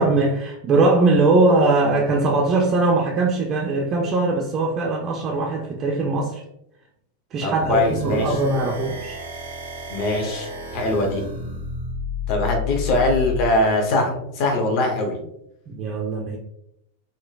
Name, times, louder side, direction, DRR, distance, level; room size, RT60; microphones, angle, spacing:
voice 1, 0.0-6.4 7.3-9.2 15.7-16.4, right 3 dB, 30° right, 0 dB, 0.4 m, -20 dB
voice 2, 7.4-8.3 9.9-11.2 12.3-15.2, left 2 dB, 40° left, 2 dB, 0.7 m, -22 dB
sound 1, 7.6-13.5, left 4 dB, 75° right, 0.7 m, -31 dB
3.7 x 2.2 x 2.3 m, 0.79 s
figure-of-eight pair, 90°, 0 cm